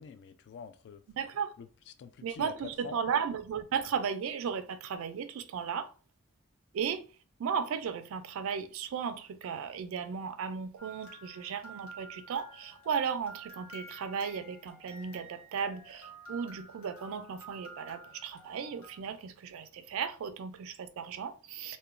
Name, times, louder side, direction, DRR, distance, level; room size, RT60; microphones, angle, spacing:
voice 1, 0.0-1.0 1.6-3.0, left 6 dB, 55° left, 0.3 m, -46 dB
voice 2, 1.2-1.5 2.2-5.9 6.7-7.1 7.4-21.8, right 6 dB, 70° right, 0.3 m, -35 dB
sound 1, 10.8-19.0, right 2 dB, 70° left, 1.0 m, -51 dB
2.8 x 2.1 x 2.5 m
head